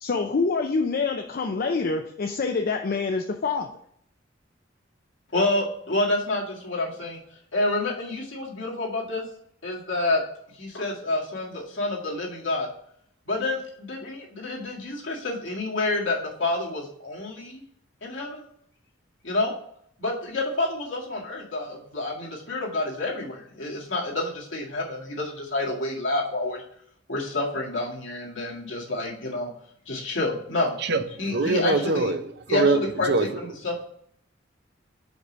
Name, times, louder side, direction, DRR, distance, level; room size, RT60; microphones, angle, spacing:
voice 1, 0.0-3.8, left 4 dB, 50° left, 0.5 m, -26 dB
voice 2, 5.3-7.2 7.5-9.2 9.6-10.2 10.5-12.7 13.3-17.6 18.0-18.4 19.2-19.5 20.0-26.6 27.1-29.5 29.9-30.8 31.2-32.1 32.5-33.1 33.4-33.8, left 2 dB, 75° left, 1.9 m, -28 dB
voice 3, 30.8-32.2 32.5-32.8 33.1-33.3, right 3 dB, 60° right, 0.6 m, -23 dB
5.2 x 4.8 x 5.1 m
head